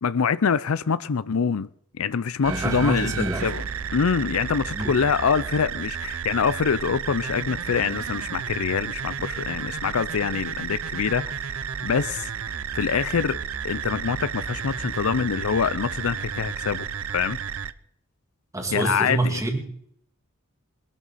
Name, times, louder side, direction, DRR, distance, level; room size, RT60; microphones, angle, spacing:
voice 1, 0.0-1.7 2.0-3.6 3.9-11.3 11.8-12.3 12.7-13.4 13.6-16.9 17.1-17.4 18.7-19.4, left 6 dB, 75° left, 0.5 m, -25 dB
sound 1, 2.4-17.7, right 7 dB, 70° right, 0.6 m, -32 dB
voice 2, 2.5-3.5 4.7-5.0 18.5-19.9, right 2 dB, 15° right, 2.3 m, -27 dB
20.5 x 12.5 x 4.2 m
head